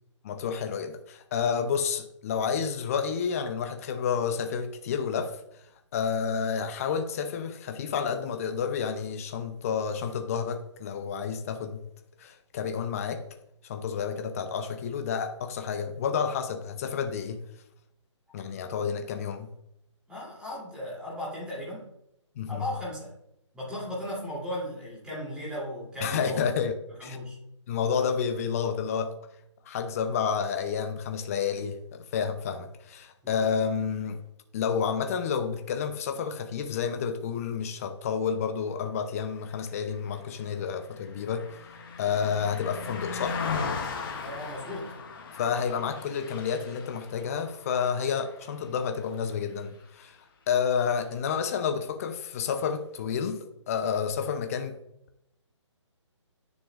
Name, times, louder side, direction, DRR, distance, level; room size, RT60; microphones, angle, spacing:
voice 1, 0.2-5.4 5.9-11.9 12.2-13.2 13.6-17.4 18.3-19.5 22.4-22.6 26.0-26.7 27.0-27.2 27.7-29.1 29.7-34.2 34.5-41.5 42.0-43.4 45.4-50.2 50.5-54.8, left 6 dB, 30° left, 0.7 m, -30 dB
voice 2, 20.1-21.8 22.5-23.1 23.5-26.5 27.0-27.4 33.2-33.4 44.2-44.9, left 1 dB, 5° right, 3.1 m, -36 dB
Car passing by, 39.9-49.4 49.8-50.0, left 5 dB, 45° left, 1.5 m, -38 dB
10.0 x 6.2 x 2.5 m
figure-of-eight pair, 145°, 16 cm